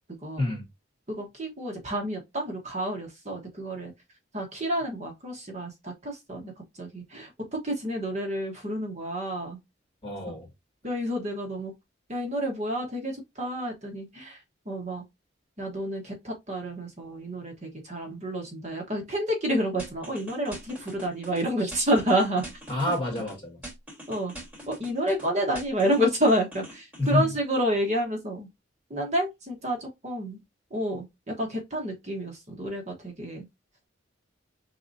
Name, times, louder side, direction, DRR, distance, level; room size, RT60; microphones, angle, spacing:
voice 1, 0.4-0.7 10.0-10.5 22.7-23.6 27.0-27.3, left 1 dB, 30° left, 1.8 m, -28 dB
voice 2, 1.1-3.9 4.3-6.5 6.8-9.6 10.8-11.7 12.1-14.4 14.7-15.0 15.6-22.4 24.1-24.3 24.7-28.5 28.9-30.4 30.7-33.5, equal, 35° right, 1.1 m, -29 dB
sound 1, 19.8-21.4 21.7-23.3 23.6-25.3 25.6-27.1, equal, 10° right, 3.1 m, -43 dB
4.7 x 3.6 x 2.6 m
head